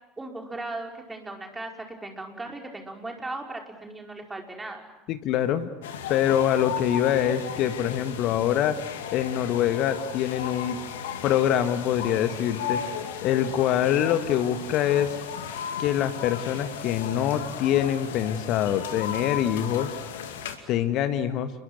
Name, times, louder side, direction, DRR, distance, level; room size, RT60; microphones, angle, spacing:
voice 1, 0.2-4.8, right 2 dB, 15° right, 2 dB, 4.9 m, -37 dB
voice 2, 5.1-5.7 6.1-8.8 9.1-10.8 11.2-12.8 13.2-15.2 15.8-19.9 20.7-21.5, left 10 dB, 45° left, 10 dB, 1.6 m, -24 dB
sound 1, 5.8-20.6, left 8 dB, 65° left, 2.4 m, -35 dB
29.0 x 23.0 x 8.0 m, 0.99 s
figure-of-eight pair, 75°, 0 cm